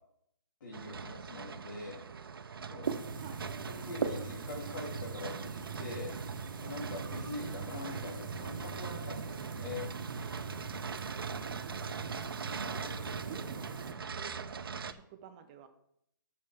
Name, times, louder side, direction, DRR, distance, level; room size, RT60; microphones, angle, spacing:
voice 1, 0.6-1.9 2.7-2.9 3.8-5.5 5.8-9.9 12.6-12.9, left 3 dB, 55° left, -5 dB, 3.3 m, -43 dB
sound 1, 0.7-14.9, right 5 dB, 90° right, 0.7 m, -43 dB
sound 2, 2.8-13.9, right 5 dB, 65° right, 1.1 m, -40 dB
voice 2, 3.2-3.5 10.9-11.0 11.4-12.1 12.7-15.7, right 8 dB, 20° right, 7 dB, 0.7 m, -52 dB
12.5 x 6.7 x 3.5 m, 0.74 s
hypercardioid pair, 170°, 12 cm